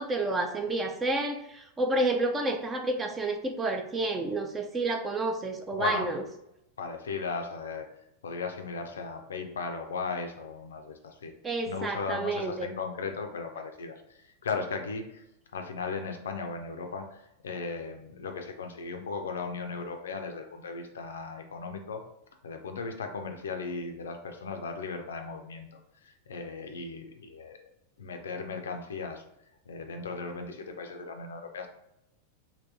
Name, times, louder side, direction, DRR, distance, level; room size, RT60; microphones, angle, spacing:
voice 1, 0.0-6.2 11.4-12.7, right 2 dB, 20° right, 4 dB, 0.4 m, -30 dB
voice 2, 6.8-7.9 8.2-11.3 11.7-15.2 15.5-22.0 22.4-27.6 28.0-29.2 29.7-31.7, left 4 dB, 65° left, 5 dB, 0.4 m, -37 dB
3.3 x 2.8 x 2.6 m, 0.82 s
figure-of-eight pair, 90°, 0 cm